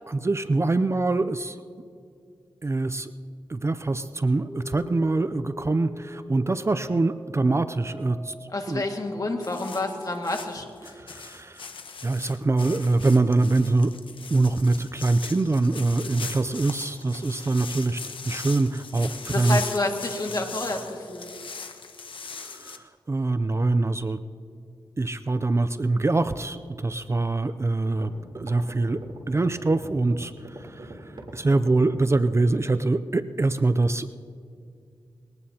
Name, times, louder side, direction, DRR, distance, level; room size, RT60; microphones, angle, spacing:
voice 1, 0.1-1.6 2.6-3.1 3.5-8.3 8.7-8.8 10.8-11.7 12.0-13.9 14.3-19.6 22.4-24.2 25.0-29.0 29.3-34.1, right 2 dB, 30° right, 12 dB, 0.5 m, -24 dB
sound 1, 4.5-10.5, equal, 10° left, 1.6 m, -43 dB
voice 2, 8.5-10.9 19.3-21.6, left 2 dB, 40° left, 3 dB, 2.0 m, -29 dB
sound 2, 9.4-22.8, left 5 dB, 70° left, 1.1 m, -40 dB
sound 3, 27.9-32.5, right 2 dB, 65° right, 3.3 m, -41 dB
22.0 x 18.5 x 2.9 m, 2.4 s
cardioid pair, 70°, 9 cm